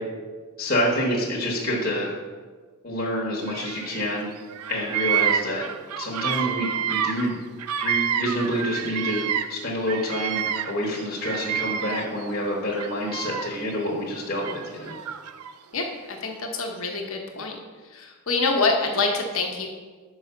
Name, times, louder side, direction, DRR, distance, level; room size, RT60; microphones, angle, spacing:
voice 1, 0.6-2.1 2.8-4.3 4.7-5.7 6.0-7.4 7.8-15.0, equal, 45° left, -4 dB, 1.1 m, -27 dB
Bird vocalization bird call bird song, 3.5-4.2 4.5-9.6 9.9-12.3 12.7-13.7 14.4-15.5, right 9 dB, 90° right, 0.4 m, -28 dB
voice 2, 15.7-17.6 17.9-19.7, left 3 dB, 65° left, 2 dB, 1.0 m, -26 dB
6.2 x 4.8 x 5.5 m, 1.5 s
head